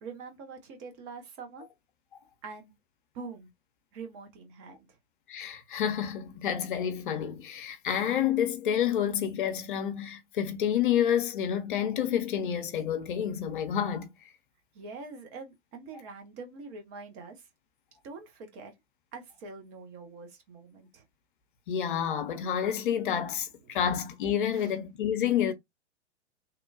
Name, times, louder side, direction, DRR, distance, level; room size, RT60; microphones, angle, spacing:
voice 1, 0.0-1.7 2.4-2.7 3.1-3.5 3.9-4.9 14.7-17.5 18.0-18.7 19.1-21.0 23.7-23.8 24.5-24.7, right 4 dB, 25° right, 0.6 m, -44 dB
voice 2, 5.3-14.1 21.7-25.5, left 9 dB, 45° left, 0.6 m, -29 dB
2.9 x 2.1 x 2.4 m
figure-of-eight pair, 105°, 35 cm